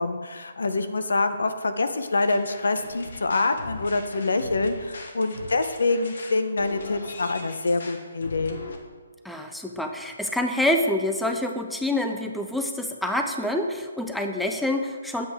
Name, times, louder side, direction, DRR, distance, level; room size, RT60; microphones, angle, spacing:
voice 1, 0.0-8.6, left 3 dB, 90° left, 9 dB, 0.7 m, -25 dB
sound 1, 2.2-8.8, left 2 dB, 65° left, 1.2 m, -40 dB
voice 2, 9.2-15.3, left 1 dB, ahead, 4 dB, 0.4 m, -27 dB
7.9 x 7.7 x 3.5 m, 1.5 s
hypercardioid pair, 165°, 0 cm